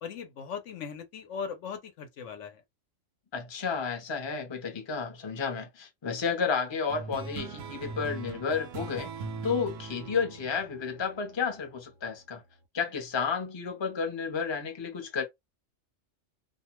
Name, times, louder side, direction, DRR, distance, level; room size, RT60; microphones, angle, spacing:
voice 1, 0.0-2.6, left 6 dB, 75° left, 0.9 m, -39 dB
voice 2, 3.3-9.1 9.4-12.4 12.7-15.2, left 5 dB, 30° left, 0.6 m, -31 dB
sound 1, 6.9-11.8, right 4 dB, 90° right, 1.0 m, -40 dB
2.5 x 2.1 x 2.9 m
omnidirectional pair, 1.3 m